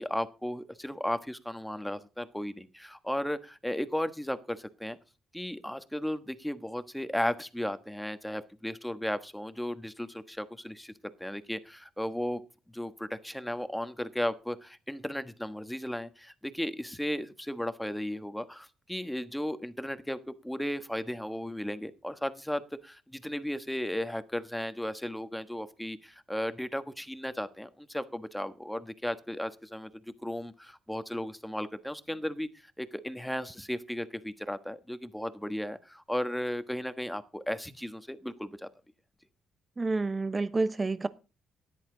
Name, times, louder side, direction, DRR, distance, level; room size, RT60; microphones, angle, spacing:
voice 1, 0.0-5.0 5.3-12.4 12.7-38.7, left 1 dB, 5° left, 1.3 m, -35 dB
voice 2, 39.8-41.1, right 3 dB, 25° right, 0.9 m, -29 dB
13.5 x 10.5 x 3.9 m
cardioid pair, 90°, 0 cm